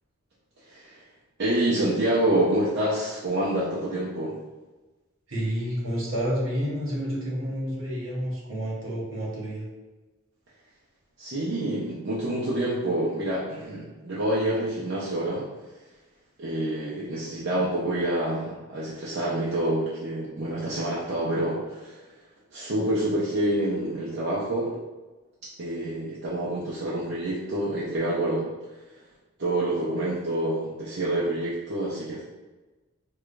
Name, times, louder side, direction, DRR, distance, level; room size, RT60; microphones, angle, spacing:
voice 1, 0.6-1.0 1.4-4.4 11.2-15.5 16.4-22.0 22.5-24.7 25.6-28.5 29.4-32.2, right 1 dB, 60° right, -7 dB, 0.6 m, -27 dB
voice 2, 5.3-9.6, equal, 75° right, -5 dB, 1.3 m, -29 dB
4.7 x 2.3 x 2.5 m, 1.2 s
head